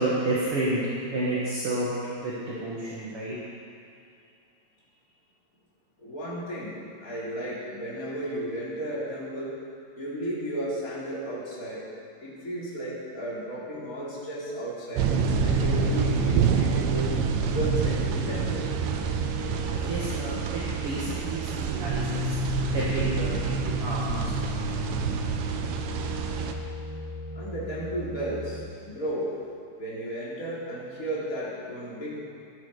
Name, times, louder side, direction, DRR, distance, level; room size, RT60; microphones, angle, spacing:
voice 1, 0.0-1.9 2.2-3.4 19.7-22.2 22.7-24.7, right 2 dB, 50° right, -6 dB, 1.9 m, -30 dB
voice 2, 6.0-9.5 10.0-11.8 12.2-15.1 15.4-18.9 27.3-29.3 29.8-32.2, right 1 dB, 20° left, -8 dB, 3.4 m, -34 dB
sound 1, 14.9-28.6, left 6 dB, 80° left, 3.7 m, -34 dB
sound 2, 15.0-26.5, right 9 dB, 80° right, 2.0 m, -28 dB
15.0 x 12.0 x 5.0 m, 2.5 s
omnidirectional pair, 4.8 m